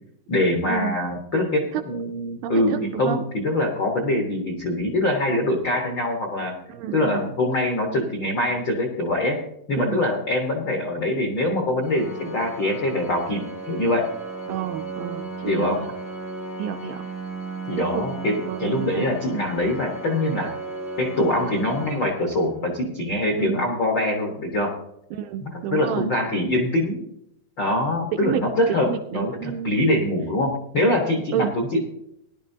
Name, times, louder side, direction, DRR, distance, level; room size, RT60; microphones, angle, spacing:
voice 1, 0.3-6.5 6.9-9.4 9.7-14.1 15.4-15.8 17.7-20.5 21.0-24.7 25.5-27.0 27.6-31.8, left 1 dB, 75° left, 1 dB, 1.0 m, -24 dB
voice 2, 2.4-3.2 6.7-7.2 9.8-10.0 14.5-15.9 16.6-17.0 17.8-18.0 18.4-19.1 23.4-23.7 25.1-26.1 28.1-29.8 31.3-31.5, right 10 dB, 80° right, 6 dB, 2.1 m, -29 dB
Organ, 11.8-22.8, right 3 dB, 20° right, 0.5 m, -35 dB
18.0 x 11.0 x 2.8 m, 0.77 s
omnidirectional pair, 4.4 m